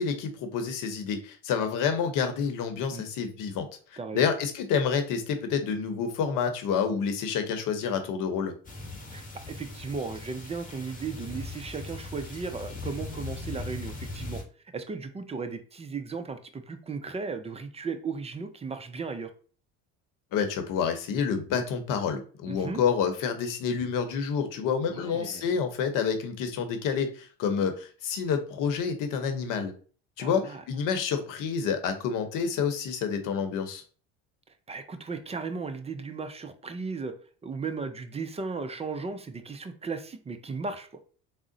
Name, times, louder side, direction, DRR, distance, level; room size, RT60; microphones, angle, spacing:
voice 1, 0.0-8.5 20.3-29.7 30.2-33.8, left 6 dB, 60° left, 8 dB, 0.9 m, -28 dB
voice 2, 4.0-4.3 9.1-14.4 14.7-19.3 22.5-22.8 24.9-25.4 30.2-30.6 34.7-37.1 37.4-41.0, right 4 dB, 20° right, 9 dB, 0.4 m, -36 dB
sound 1, 8.6-14.4, left 2 dB, 25° left, 1.1 m, -39 dB
3.6 x 2.1 x 3.8 m, 0.40 s
hypercardioid pair, 75°, 36 cm